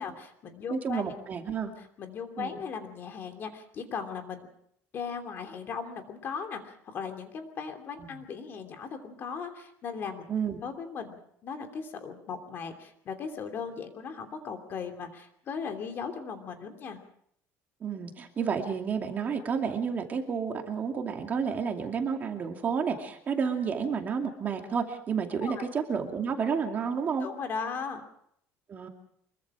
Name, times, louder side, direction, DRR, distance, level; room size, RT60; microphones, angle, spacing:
voice 1, 0.0-1.0 2.0-4.5 4.9-10.3 10.6-17.0 25.4-25.7 27.2-28.0, left 6 dB, 35° left, 6 dB, 2.9 m, -38 dB
voice 2, 0.7-1.7 2.4-2.6 8.0-8.2 10.3-10.6 17.8-27.3 28.7-28.9, right 6 dB, 30° right, 3 dB, 2.5 m, -31 dB
25.0 x 23.0 x 4.9 m, 0.69 s
cardioid pair, 160°, 6 cm